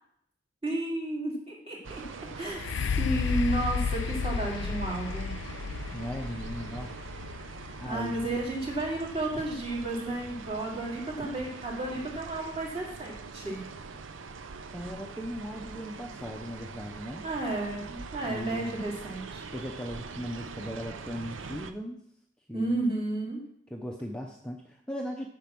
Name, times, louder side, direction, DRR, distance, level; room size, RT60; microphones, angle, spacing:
voice 1, 0.6-2.0 2.3-2.6 2.9-5.5 7.6-13.7 17.2-19.5 22.5-23.4, right 2 dB, 30° right, -3 dB, 2.9 m, -32 dB
sound 1, 1.8-21.7, right 4 dB, 75° right, 0.7 m, -43 dB
sound 2, 2.5-10.3 10.9-11.0, left 6 dB, 65° left, 0.3 m, -33 dB
voice 2, 5.9-7.0 7.8-8.4 14.7-17.3 18.3-18.8 19.5-22.0 22.5-22.8 23.7-25.3, equal, 5° left, 0 dB, 0.7 m, -38 dB
8.9 x 6.0 x 5.9 m, 0.72 s
head